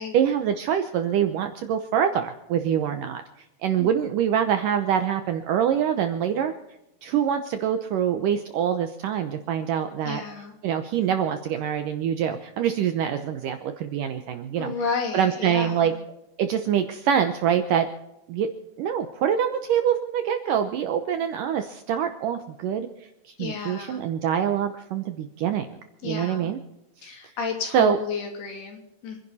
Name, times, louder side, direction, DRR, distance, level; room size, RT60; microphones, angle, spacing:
voice 1, 0.0-3.2 3.6-6.6 7.0-10.2 10.6-14.7 15.1-15.9 16.4-17.9 18.3-18.5 18.8-22.9 23.3-25.7 26.0-26.6 27.0-27.1 27.7-28.0, right 9 dB, 75° right, 7 dB, 2.0 m, -25 dB
voice 2, 10.0-10.5 14.6-16.0 23.4-24.0 26.0-26.5 27.0-29.2, left 5 dB, 70° left, 2 dB, 4.9 m, -32 dB
27.0 x 11.0 x 4.2 m, 0.89 s
omnidirectional pair, 4.8 m